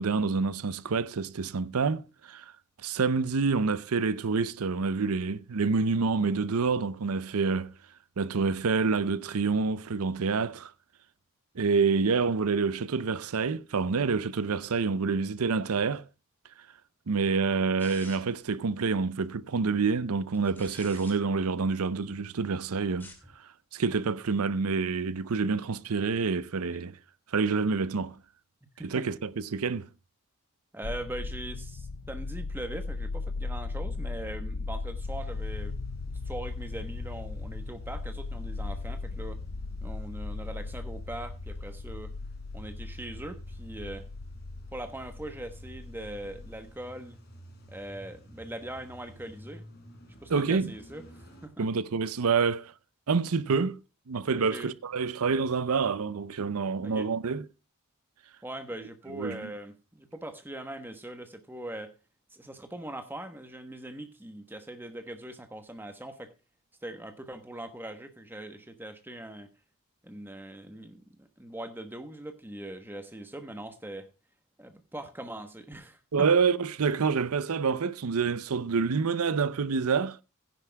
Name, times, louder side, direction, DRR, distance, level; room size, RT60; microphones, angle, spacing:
voice 1, 0.0-2.4 2.8-7.7 8.2-10.7 11.6-16.0 17.1-23.1 23.7-27.0 27.3-28.1 28.8-29.9 50.3-50.7 51.6-52.7 53.1-53.8 54.1-57.4 59.1-59.5 76.1-80.2, right 5 dB, 85° right, 0.6 m, -27 dB
sound 1, 17.8-18.4 20.3-21.1 22.9-23.3, left 2 dB, 10° left, 2.1 m, -48 dB
voice 2, 30.7-35.7 36.2-39.4 39.8-42.1 42.5-44.1 44.7-47.2 47.7-49.7 50.2-51.7 54.4-54.7 56.8-57.1 58.4-61.9 62.3-66.3 66.8-69.5 70.0-74.1 74.6-76.3, right 1 dB, 10° right, 1.1 m, -41 dB
sound 2, 30.8-46.7, left 3 dB, 75° left, 0.5 m, -37 dB
Car / Engine starting / Idling, 34.9-51.5, equal, 50° left, 3.9 m, -49 dB
16.0 x 10.5 x 2.2 m
head